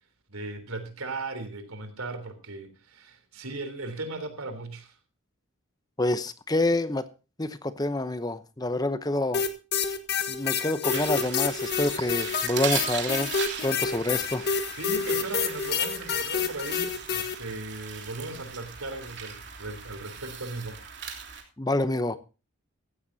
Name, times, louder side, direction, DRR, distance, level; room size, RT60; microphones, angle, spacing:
voice 1, 0.3-5.0 14.7-20.8, right 2 dB, 90° right, 3.6 m, -37 dB
voice 2, 6.0-7.1 7.4-9.4 10.3-13.3 13.6-14.4 21.6-22.2, left 2 dB, 20° left, 0.8 m, -27 dB
sound 1, 9.3-17.3, left 6 dB, 50° left, 1.6 m, -28 dB
sound 2, 10.8-21.4, right 7 dB, 50° right, 3.2 m, -38 dB
16.5 x 15.0 x 2.8 m
head